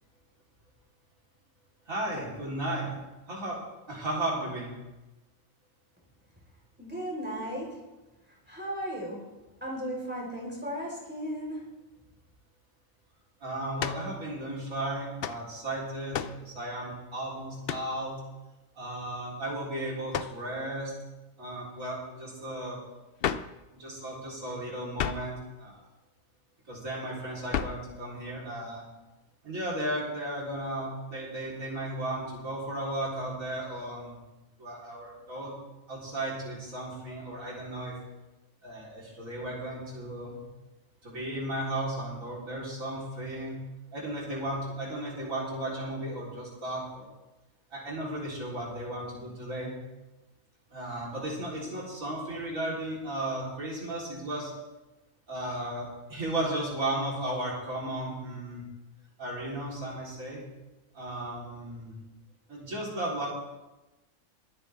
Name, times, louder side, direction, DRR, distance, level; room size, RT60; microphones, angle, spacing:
voice 1, 1.9-2.9 3.3-3.6 3.9-4.7 13.4-18.2 18.8-20.9 21.4-22.8 23.7-25.8 26.7-28.8 29.4-34.1 34.6-35.5 35.9-37.9 38.6-40.4 41.0-43.6 43.9-47.1 47.7-49.7 50.7-54.5 55.3-58.6 59.2-60.4 60.9-61.9 62.5-63.3, right 1 dB, 80° right, -5 dB, 4.3 m, -35 dB
voice 2, 6.8-7.8 8.5-9.2 9.6-11.7, equal, 5° right, -4 dB, 4.5 m, -35 dB
sound 1, 13.8-14.1 15.2-15.4 16.1-16.4 17.6-17.9 20.1-20.4 23.2-23.6 25.0-25.3 27.5-27.9, left 8 dB, 60° left, 0.6 m, -32 dB
23.0 x 9.6 x 3.5 m, 1.1 s
omnidirectional pair, 1.4 m